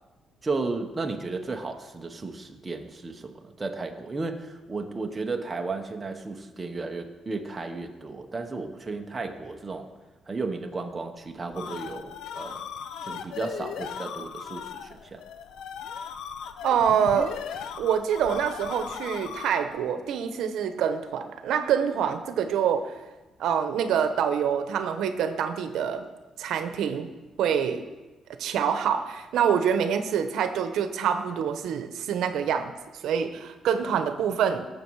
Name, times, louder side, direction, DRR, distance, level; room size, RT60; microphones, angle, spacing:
voice 1, 0.4-9.9 10.3-12.6 13.0-15.2, right 3 dB, 20° right, 3 dB, 0.9 m, -34 dB
sound 1, 11.5-19.8, left 7 dB, 75° left, 0.7 m, -38 dB
voice 2, 16.6-17.4 17.8-22.9 23.4-26.0 26.4-27.1 27.4-27.8 28.4-32.7 33.0-34.7, right 8 dB, 75° right, 9 dB, 0.9 m, -26 dB
19.0 x 7.2 x 4.7 m, 1.2 s
cardioid pair, 175°, 0 cm